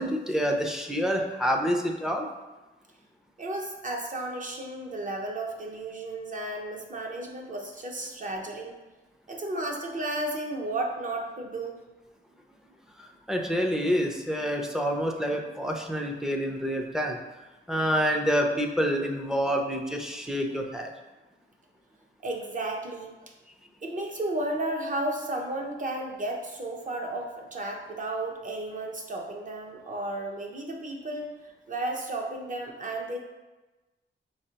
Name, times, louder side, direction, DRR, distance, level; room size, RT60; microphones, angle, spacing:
voice 1, 0.0-2.3 13.0-17.2 17.7-20.9, equal, ahead, 2 dB, 0.4 m, -27 dB
voice 2, 3.4-8.8 9.3-11.8 22.2-23.3 23.8-33.2, right 1 dB, 40° right, 1 dB, 0.7 m, -33 dB
5.6 x 3.2 x 2.8 m, 1.1 s
wide cardioid pair, 125°, 21 cm